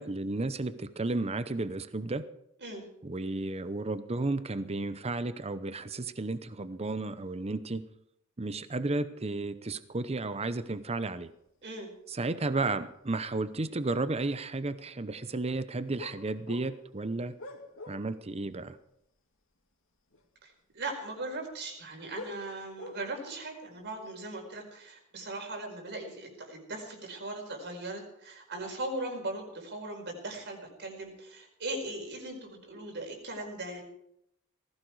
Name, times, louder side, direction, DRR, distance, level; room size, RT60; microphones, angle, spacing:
voice 1, 0.0-2.2 3.0-7.8 8.4-11.3 12.1-17.3 17.9-18.8, right 2 dB, 30° right, 13 dB, 0.7 m, -33 dB
voice 2, 11.6-11.9 20.4-33.8, right 2 dB, 50° right, 3 dB, 4.9 m, -39 dB
sound 1, 12.5-12.6 13.1-13.6 14.0-14.1 16.0-18.2 18.5-18.6 19.7-19.8 20.1-20.4 21.6-23.4 23.9-24.1, left 2 dB, 60° left, 2.8 m, -46 dB
19.0 x 16.0 x 4.7 m, 0.76 s
head